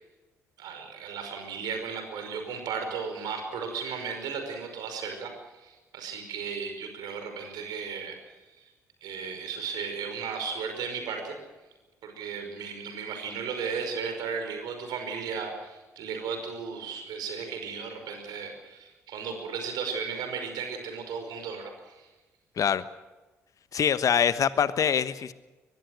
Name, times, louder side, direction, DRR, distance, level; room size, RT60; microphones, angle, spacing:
voice 1, 0.6-5.3 5.6-8.2 8.6-8.7 9.0-11.4 12.0-22.1, right 6 dB, 60° right, 5 dB, 5.3 m, -35 dB
voice 2, 23.7-25.3, left 8 dB, 45° left, 15 dB, 1.2 m, -24 dB
23.5 x 22.0 x 6.5 m, 1.2 s
figure-of-eight pair, 45°, 8 cm